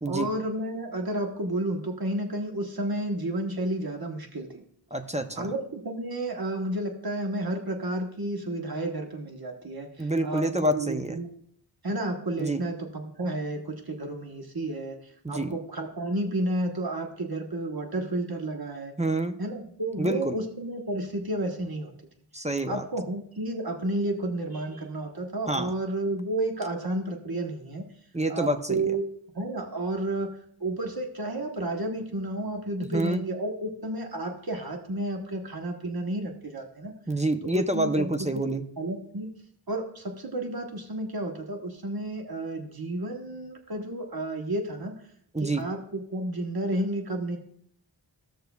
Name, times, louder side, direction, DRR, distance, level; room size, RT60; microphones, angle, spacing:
voice 1, 0.0-4.6 5.4-11.3 11.8-15.0 15.3-18.9 19.4-21.9 22.7-27.9 28.3-29.0 29.3-30.3 30.6-36.9 37.5-38.5 38.8-39.3 39.7-44.9 45.4-47.4, right 1 dB, 50° right, 3 dB, 1.3 m, -31 dB
voice 2, 4.9-5.5 10.0-11.2 12.4-12.6 15.2-15.5 19.0-19.4 20.0-20.4 22.3-22.8 25.5-25.7 28.1-28.8 32.8-33.2 37.1-38.6 45.3-45.6, right 1 dB, 15° right, 7 dB, 0.6 m, -27 dB
15.5 x 6.5 x 2.3 m, 0.67 s
wide cardioid pair, 45°, 46 cm